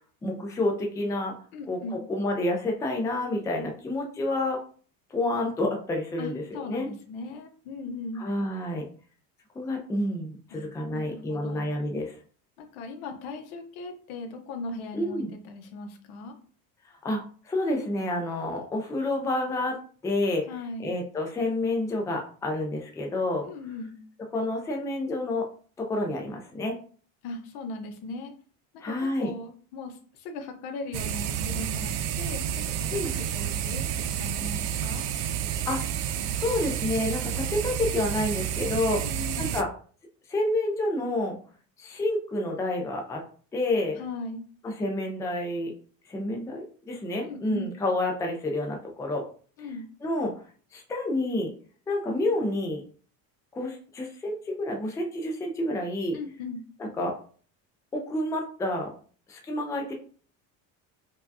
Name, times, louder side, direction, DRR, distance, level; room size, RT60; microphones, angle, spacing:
voice 1, 0.2-1.3 1.7-4.6 5.1-6.9 8.2-8.9 9.5-12.2 14.9-15.3 17.0-20.4 20.8-23.5 24.3-25.5 25.8-26.8 28.8-29.3 32.9-33.1 35.7-39.0 39.4-39.7 40.3-41.4 41.8-43.2 43.5-44.0 44.6-45.7 46.1-49.3 49.6-49.7 50.0-50.3 50.7-51.5 51.9-52.8 53.5-56.2 56.8-57.1 57.9-58.9 59.3-59.9, left 1 dB, 10° left, 1 dB, 0.4 m, -29 dB
voice 2, 1.5-2.0 6.2-8.4 10.5-10.7 10.9-11.7 12.6-16.3 20.5-20.9 23.4-24.0 27.2-28.3 28.7-28.8 29.2-35.1 39.0-39.5 44.0-44.4 47.2-47.7 49.6-49.9 56.1-56.6, left 3 dB, 75° left, 4 dB, 0.9 m, -38 dB
sound 1, 30.9-39.6, right 9 dB, 85° right, 0.5 m, -30 dB
4.6 x 2.3 x 2.6 m, 0.43 s
cardioid pair, 150°, 38 cm